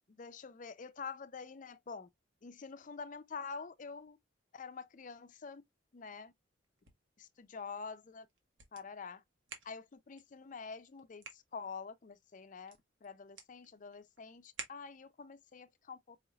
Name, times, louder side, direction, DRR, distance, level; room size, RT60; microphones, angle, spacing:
voice 1, 0.2-2.1 2.4-4.2 4.5-5.6 5.9-6.3 7.2-8.3 8.7-9.2 9.6-16.2, left 5 dB, 40° left, 0.5 m, -47 dB
sound 1, 6.6-15.3, right 5 dB, 85° right, 1.4 m, -55 dB
4.7 x 3.1 x 2.3 m
head